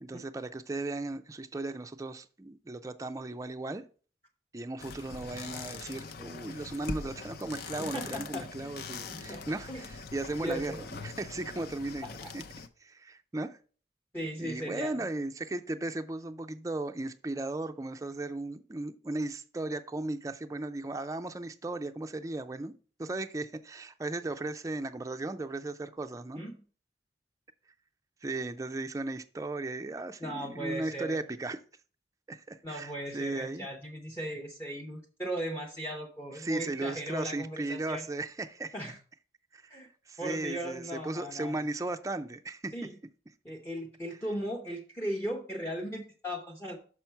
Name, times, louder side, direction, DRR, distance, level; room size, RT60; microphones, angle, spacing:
voice 1, 0.0-3.8 4.5-12.1 12.3-12.4 12.8-13.6 14.4-22.7 23.0-26.4 28.2-31.6 32.3-33.7 36.4-38.7 39.5-39.8 40.1-42.7, right 2 dB, 20° right, 0.4 m, -36 dB
sound 1, 4.8-12.7, left 4 dB, 60° left, 0.6 m, -42 dB
voice 2, 7.8-8.7 9.1-9.9 10.4-10.8 12.0-12.3 14.1-15.1 26.4-26.5 30.2-31.2 32.6-38.0 38.7-39.0 39.7-39.9 40.2-41.7 42.7-43.0 43.4-46.8, equal, 15° left, 0.7 m, -37 dB
6.2 x 5.8 x 4.4 m
head